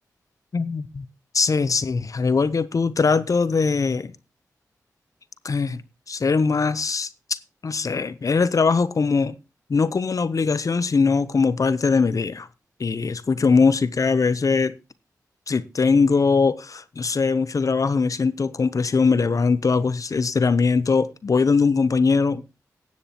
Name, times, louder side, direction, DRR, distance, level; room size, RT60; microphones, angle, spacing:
voice 1, 0.5-1.1 1.3-4.1 5.4-5.8 6.1-7.1 7.6-9.3 9.7-12.5 12.8-14.7 15.5-22.4, left 4 dB, 55° left, 0.7 m, -21 dB
15.5 x 10.5 x 2.9 m
cardioid pair, 50°, 7 cm